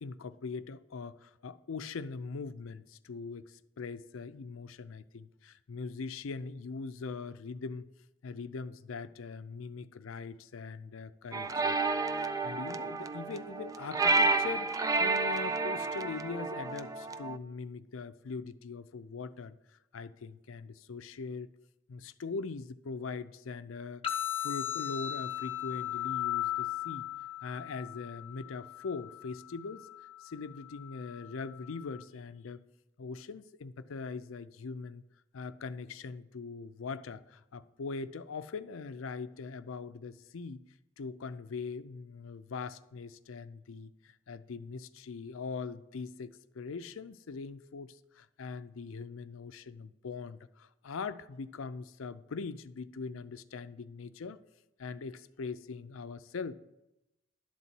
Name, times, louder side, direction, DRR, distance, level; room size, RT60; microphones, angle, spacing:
voice 1, 0.0-7.9 8.2-11.9 12.4-19.6 19.9-21.5 21.9-24.0 24.4-27.1 27.4-29.9 30.2-32.6 33.0-35.0 35.3-40.6 41.0-54.4 54.8-56.5, left 4 dB, 75° left, 13 dB, 0.5 m, -41 dB
sound 1, 11.3-17.4, right 3 dB, 15° right, 0.3 m, -30 dB
sound 2, 24.0-32.0, left 12 dB, 30° left, 1.0 m, -38 dB
11.5 x 4.1 x 7.6 m, 0.92 s
head